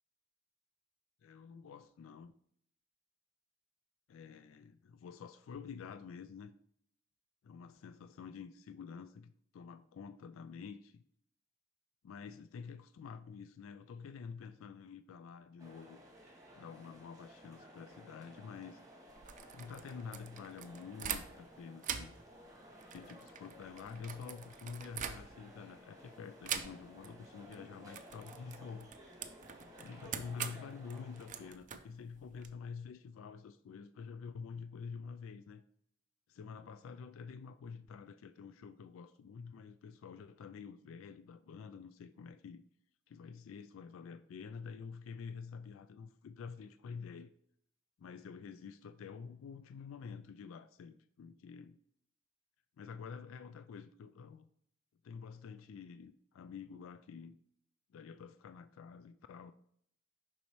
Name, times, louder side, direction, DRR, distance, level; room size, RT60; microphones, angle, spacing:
voice 1, 1.2-2.3 4.1-6.5 7.4-11.0 12.0-16.0 16.6-18.8 19.5-22.2 22.9-28.9 29.8-35.6 36.3-42.6 43.1-47.3 48.0-51.8 52.8-54.5 55.0-57.4 57.9-59.5, left 6 dB, 80° left, 0.3 m, -48 dB
sound 1, 15.6-31.5, equal, 20° right, 1.5 m, -56 dB
sound 2, 19.1-21.5 21.8-25.6 26.4-27.1 27.4-27.6 27.9-32.5, right 8 dB, 40° right, 0.5 m, -44 dB
7.0 x 5.4 x 3.1 m
head